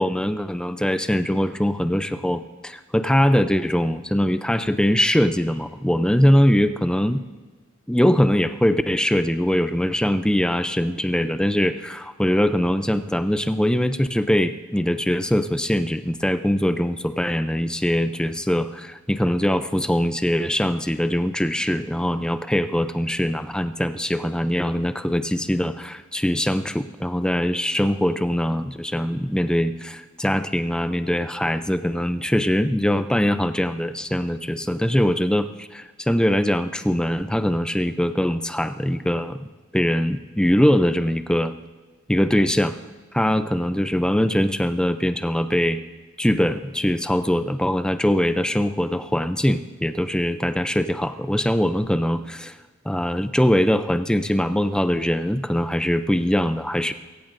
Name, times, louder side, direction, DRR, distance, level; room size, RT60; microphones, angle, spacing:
voice 1, 0.0-7.2 7.9-41.5 42.1-42.8 43.1-45.8 46.2-52.6 52.9-56.9, equal, 5° left, 10 dB, 0.4 m, -22 dB
24.0 x 14.0 x 2.6 m, 1.3 s
head